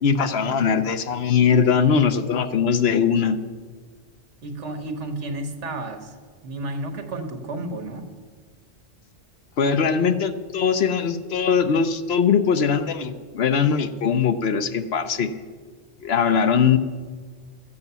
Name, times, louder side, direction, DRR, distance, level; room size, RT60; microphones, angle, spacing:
voice 1, 0.0-3.4 9.6-15.3 16.0-16.8, left 6 dB, 65° left, 10 dB, 1.0 m, -21 dB
voice 2, 4.4-6.2 6.4-8.1, right 2 dB, 90° right, 6 dB, 1.5 m, -32 dB
13.5 x 8.2 x 6.8 m, 1.5 s
omnidirectional pair, 1.2 m